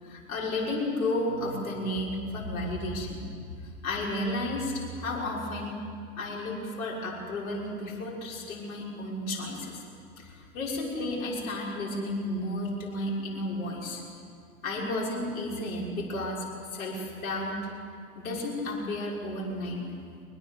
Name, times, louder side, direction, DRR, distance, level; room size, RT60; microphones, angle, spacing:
voice 1, 0.0-3.2 3.8-5.7 6.2-9.8 10.2-14.0 14.6-17.5 18.1-19.8, left 1 dB, 70° left, -3 dB, 6.5 m, -32 dB
23.0 x 20.0 x 7.6 m, 2.3 s
hypercardioid pair, 100°, 43 cm